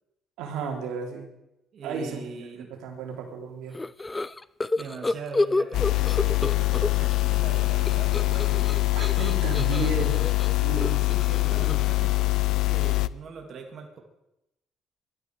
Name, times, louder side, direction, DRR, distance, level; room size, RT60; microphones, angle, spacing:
voice 1, 0.4-1.3 1.8-3.8 8.9-11.0, right 5 dB, 90° right, 1 dB, 3.4 m, -33 dB
voice 2, 1.7-2.7 4.6-8.7 11.0-14.0, right 5 dB, 50° right, 2 dB, 2.6 m, -41 dB
sound 1, 3.7-7.2 7.5-12.0, left 2 dB, 15° left, 0.5 m, -30 dB
sound 2, 5.7-13.1, left 21 dB, 80° left, 0.5 m, -24 dB
21.0 x 13.0 x 4.8 m, 0.90 s
cardioid pair, 95°, 0 cm